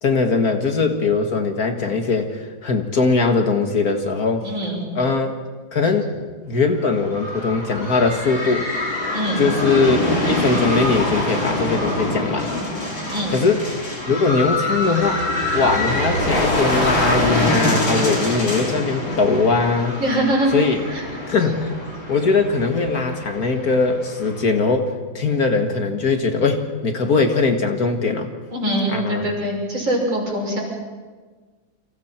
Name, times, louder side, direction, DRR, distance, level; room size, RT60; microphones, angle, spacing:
voice 1, 0.0-4.5 5.0-5.4 5.7-6.1 6.5-8.7 9.4-12.5 13.3-13.6 14.1-15.2 15.5-19.9 20.5-20.8 21.3-28.3 28.9-29.3, left 4 dB, 50° left, 5 dB, 2.1 m, -20 dB
voice 2, 4.4-4.8 9.1-9.5 13.1-13.4 20.0-20.5 20.9-21.1 28.5-30.6, right 1 dB, 80° right, -3 dB, 7.3 m, -23 dB
sound 1, 6.8-24.4, left 1 dB, 75° left, 6.5 m, -25 dB
29.5 x 25.5 x 4.5 m, 1.4 s
omnidirectional pair, 2.1 m